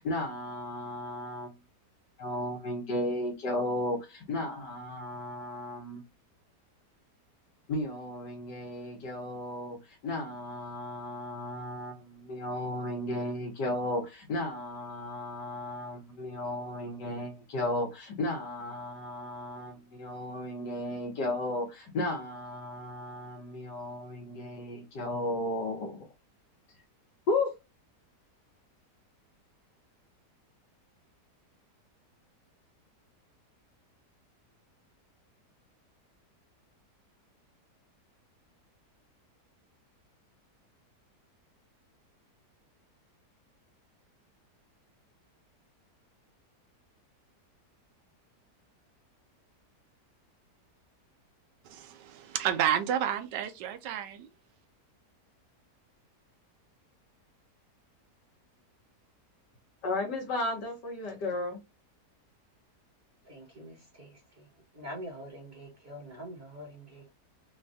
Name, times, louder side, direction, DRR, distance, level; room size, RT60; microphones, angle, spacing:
voice 1, 0.0-1.6 2.2-6.0 7.7-26.1 27.3-27.5 59.8-61.6, left 1 dB, 80° left, 1.8 m, -34 dB
voice 2, 51.6-54.3, right 10 dB, 90° right, 1.3 m, -30 dB
voice 3, 63.2-64.4 64.7-67.1, equal, 40° right, 1.5 m, -45 dB
5.2 x 2.3 x 2.6 m
omnidirectional pair, 1.8 m